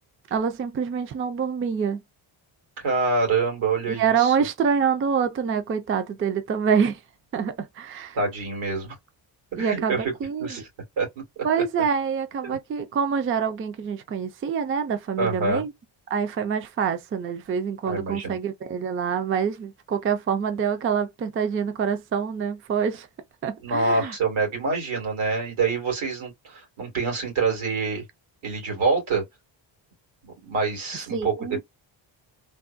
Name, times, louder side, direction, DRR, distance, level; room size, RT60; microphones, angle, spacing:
voice 1, 0.3-2.0 4.0-7.0 7.3-8.2 9.6-10.5 11.4-15.7 16.1-23.1 23.4-24.1 31.1-31.6, right 7 dB, 30° right, 0.4 m, -26 dB
voice 2, 2.8-4.3 8.1-8.9 9.5-10.1 10.4-10.7 11.0-11.1 11.4-11.5 12.4-12.6 15.2-15.6 17.9-18.4 23.6-28.0 28.4-29.2 30.2-31.6, right 3 dB, 85° right, 2.3 m, -26 dB
3.4 x 2.1 x 2.5 m
wide cardioid pair, 165°, 47 cm